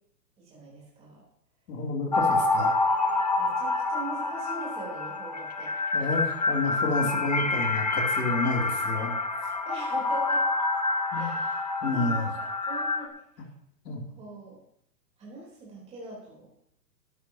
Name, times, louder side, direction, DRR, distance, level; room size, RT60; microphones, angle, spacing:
voice 1, 0.4-1.2 2.1-2.2 3.3-5.7 9.7-10.4 11.1-11.6 11.9-13.4 14.1-14.6 15.2-16.5, right 3 dB, 10° right, -4 dB, 3.5 m, -42 dB
voice 2, 1.7-2.7 5.9-9.2 11.1-11.3 11.8-12.3 13.8-14.0, left 3 dB, 75° left, 0 dB, 3.0 m, -30 dB
sound 1, 2.1-13.1, left 3 dB, 30° left, 0.4 m, -27 dB
12.5 x 12.0 x 2.8 m, 0.73 s
hypercardioid pair, 160°, 49 cm